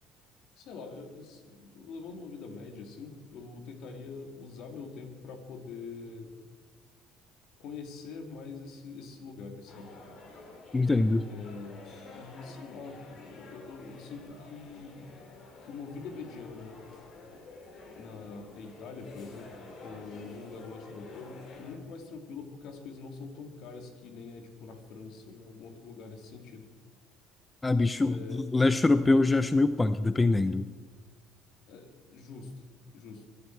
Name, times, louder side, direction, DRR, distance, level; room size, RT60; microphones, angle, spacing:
voice 1, 0.6-6.4 7.6-10.0 11.3-15.2 15.6-16.9 17.9-19.5 19.8-26.7 28.0-28.4 31.7-32.5 32.9-33.3, left 4 dB, 55° left, 5 dB, 2.5 m, -44 dB
sound 1, 9.7-21.8, left 3 dB, 40° left, 2.7 m, -50 dB
voice 2, 10.7-11.3 27.6-30.7, left 2 dB, 10° left, 12 dB, 0.4 m, -24 dB
23.0 x 12.0 x 4.6 m, 1.5 s
cardioid pair, 160°, 0 cm